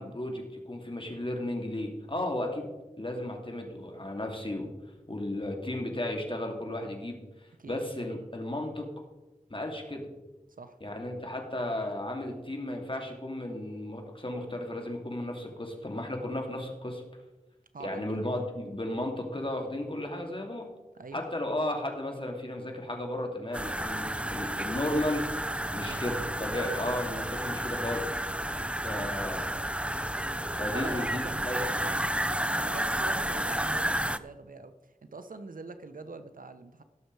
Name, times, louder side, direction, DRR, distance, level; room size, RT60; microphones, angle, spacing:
voice 1, 0.0-2.7 3.0-4.7 5.1-8.9 9.5-10.1 10.8-17.0 17.8-20.7 21.1-25.3 25.7-28.1 28.8-29.5 30.5-31.7, left 1 dB, 40° left, 2 dB, 2.8 m, -34 dB
voice 2, 17.7-18.2 20.9-21.2 25.8-26.8 28.9-29.2 30.7-36.8, right 3 dB, 85° right, 10 dB, 0.9 m, -44 dB
sound 1, 23.5-34.2, right 1 dB, 10° right, 0.5 m, -31 dB
18.0 x 6.8 x 4.8 m, 1.1 s
wide cardioid pair, 50°, 14 cm